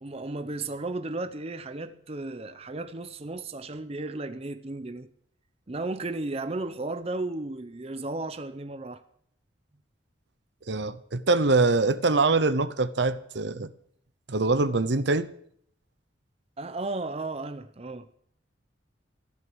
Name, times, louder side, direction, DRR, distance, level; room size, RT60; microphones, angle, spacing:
voice 1, 0.0-5.1 5.7-9.0 16.6-18.1, right 2 dB, 30° right, 0.7 m, -34 dB
voice 2, 10.7-13.7 14.3-15.3, right 3 dB, 60° right, 0.8 m, -24 dB
14.5 x 12.5 x 6.3 m
head